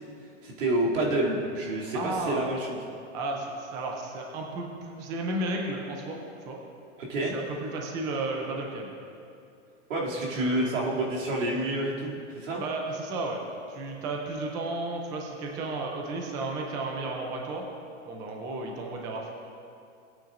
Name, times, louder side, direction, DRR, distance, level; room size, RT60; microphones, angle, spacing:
voice 1, 0.4-2.8 7.0-7.3 9.9-12.6, right 1 dB, 90° right, -4 dB, 2.7 m, -28 dB
voice 2, 1.9-2.4 3.1-6.2 6.5-6.6 7.3-8.9 10.3-10.7 12.6-13.4 13.7-17.7 18.1-19.3, right 2 dB, 10° right, 1 dB, 0.4 m, -33 dB
18.5 x 9.0 x 2.5 m, 2.6 s
supercardioid pair, 155°, 37 cm